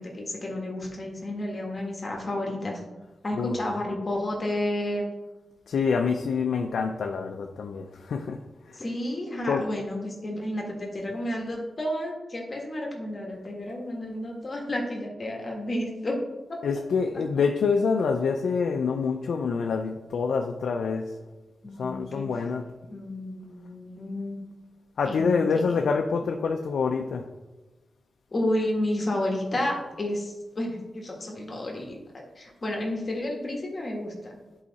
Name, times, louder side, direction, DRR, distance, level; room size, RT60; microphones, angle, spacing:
voice 1, 0.0-2.8 3.2-5.1 8.7-16.2 16.5-16.6 21.6-22.2 22.9-24.4 25.1-25.9 28.3-34.3, left 1 dB, 35° left, -1 dB, 1.7 m, -31 dB
voice 2, 3.3-3.6 5.7-8.4 8.7-8.8 9.4-9.6 16.6-21.1 21.8-22.6 25.0-27.2, left 5 dB, 80° left, 3 dB, 0.5 m, -26 dB
10.5 x 4.8 x 4.1 m, 1.2 s
wide cardioid pair, 100°, 0 cm